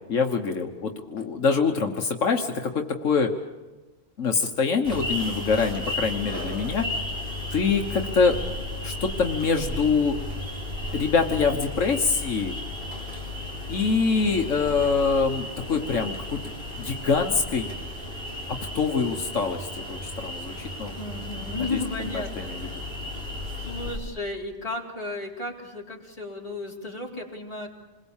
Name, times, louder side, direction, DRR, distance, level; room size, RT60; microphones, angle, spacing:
voice 1, 0.1-3.3 4.2-6.9 7.5-8.4 8.8-10.2 10.9-12.6 13.7-16.4 16.8-17.8 18.7-20.9 21.7-21.8 22.1-22.6, left 5 dB, 80° left, 3 dB, 1.6 m, -24 dB
sound 1, 4.8-24.0, left 1 dB, 50° right, 4.2 m, -34 dB
voice 2, 20.9-22.9 23.6-27.7, left 2 dB, 30° left, -2 dB, 4.0 m, -34 dB
27.5 x 22.0 x 7.3 m, 1.1 s
omnidirectional pair, 1.3 m